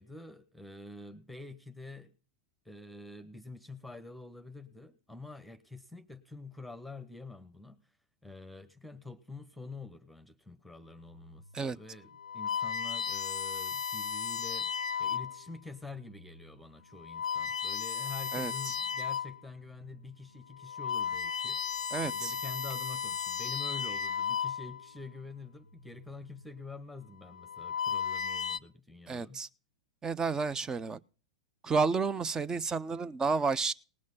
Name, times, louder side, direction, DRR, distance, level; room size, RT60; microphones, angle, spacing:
voice 1, 0.0-2.1 2.6-7.9 8.2-14.7 15.0-21.7 22.0-29.4, left 3 dB, ahead, 1.1 m, -47 dB
sound 1, 11.2-11.5 12.1-15.5 16.2-16.4 17.0-19.4 19.9-20.0 20.5-25.0 26.0-26.4 27.3-28.6, left 7 dB, 90° left, 0.5 m, -35 dB
voice 2, 18.3-18.8 21.9-22.3 29.1-29.5 30.0-31.0 31.6-33.7, right 4 dB, 20° right, 0.7 m, -31 dB
19.0 x 6.4 x 5.5 m
hypercardioid pair, 105°, 3 cm